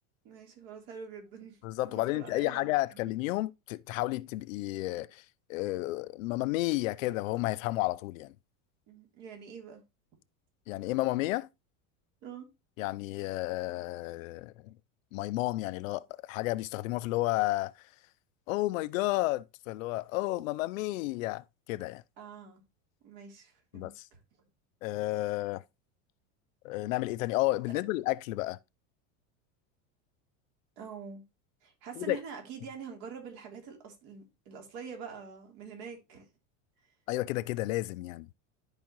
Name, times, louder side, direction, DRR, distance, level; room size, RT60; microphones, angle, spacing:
voice 1, 0.2-1.6 1.9-3.0 8.9-9.8 12.2-12.5 22.2-22.6 23.0-24.2 27.7-27.8 30.8-31.2 31.6-36.3, right 6 dB, 60° right, 3.3 m, -45 dB
voice 2, 1.6-5.2 5.5-8.3 10.7-11.5 12.8-14.7 15.1-17.7 18.5-22.0 23.7-24.1 24.8-25.6 26.6-28.6 32.0-32.2 37.1-38.3, left 18 dB, 85° left, 0.6 m, -32 dB
12.5 x 5.0 x 3.0 m
supercardioid pair, 150°, 39 cm